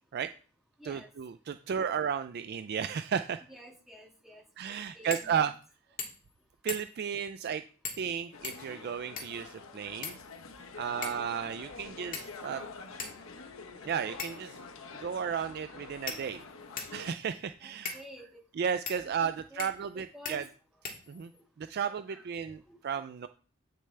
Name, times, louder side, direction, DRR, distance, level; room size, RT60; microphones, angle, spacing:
voice 1, 0.8-3.4 4.6-5.5 6.6-7.6 8.0-10.2 10.8-12.6 13.9-14.5 15.0-16.4 16.9-18.0 18.6-20.4 21.1-21.3 21.6-23.3, right 7 dB, 50° right, 10 dB, 0.3 m, -34 dB
voice 2, 3.4-5.4 17.6-18.2 19.0-19.7 20.1-20.4 22.1-22.2 22.7-22.8, equal, ahead, -2 dB, 2.0 m, -51 dB
sound 1, 5.1-5.3 5.6-5.7 6.0-6.3 6.7-7.1 7.8-8.1 8.4-9.5 10.0-10.6 11.0-11.3 12.1-12.5 13.0-13.1 14.2-14.5 15.3-15.4 16.1-17.0 17.9-18.0 18.9-19.0 19.6-19.9 20.3-20.4 20.8-21.4, left 5 dB, 40° left, 1.8 m, -40 dB
sound 2, 8.3-17.1, left 4 dB, 75° left, 1.0 m, -46 dB
8.9 x 6.5 x 3.3 m, 0.39 s
head